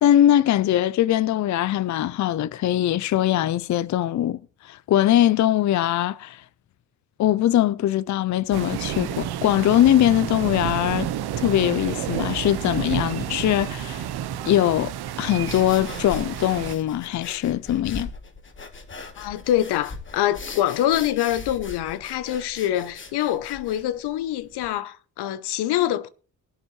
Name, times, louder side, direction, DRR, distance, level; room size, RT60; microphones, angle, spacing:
voice 1, 0.0-4.4 4.6-6.4 7.2-11.1 11.4-14.0 14.5-14.9 15.2-18.1, left 12 dB, 50° left, 0.5 m, -21 dB
sound 1, 8.5-16.7, right 11 dB, 80° right, 0.8 m, -30 dB
sound 2, 15.4-24.7, left 4 dB, 30° left, 1.4 m, -40 dB
voice 2, 19.2-26.1, left 12 dB, 85° left, 0.8 m, -25 dB
20.0 x 9.0 x 3.1 m
cardioid pair, 90°, 38 cm